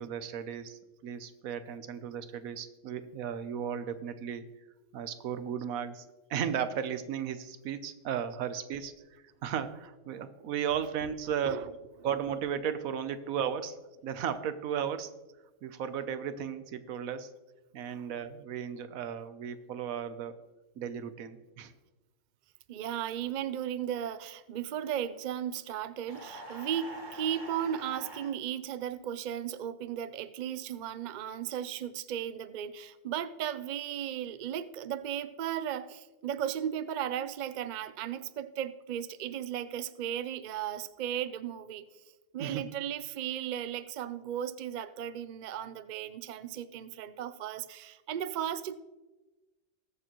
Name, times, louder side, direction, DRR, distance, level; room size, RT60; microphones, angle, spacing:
voice 1, 0.0-4.4 4.9-6.0 6.3-8.9 9.4-11.6 12.0-13.8 14.0-15.1 15.6-17.3 17.7-20.3 20.8-21.7 42.4-42.6, right 8 dB, 90° right, 12 dB, 1.2 m, -35 dB
voice 2, 22.7-41.8 42.3-48.8, right 10 dB, 60° right, 13 dB, 0.5 m, -36 dB
sound 1, 26.1-28.3, right 1 dB, 35° right, 1.7 m, -45 dB
20.5 x 6.8 x 3.0 m, 1.1 s
omnidirectional pair, 1.4 m